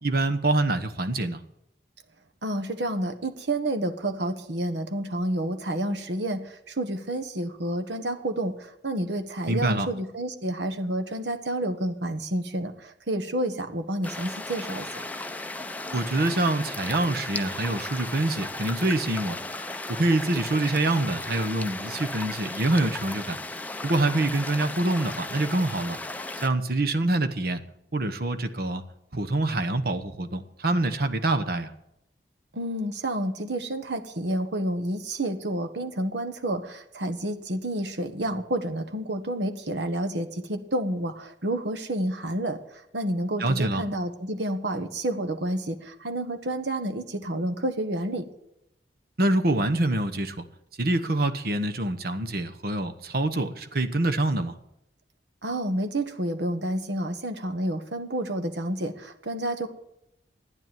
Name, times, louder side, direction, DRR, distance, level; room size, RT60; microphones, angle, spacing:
voice 1, 0.0-1.4 9.5-9.9 15.9-19.4 19.9-23.4 23.8-26.0 26.4-27.6 27.9-28.8 29.1-31.7 43.4-43.8 49.2-50.4 50.8-54.6, right 2 dB, 55° right, 9 dB, 1.1 m, -25 dB
voice 2, 2.4-15.0 32.5-48.3 55.4-59.7, right 1 dB, 75° right, 7 dB, 1.3 m, -29 dB
sound 1, 14.0-26.5, left 2 dB, 10° left, 0.6 m, -35 dB
12.5 x 9.7 x 9.1 m, 0.83 s
head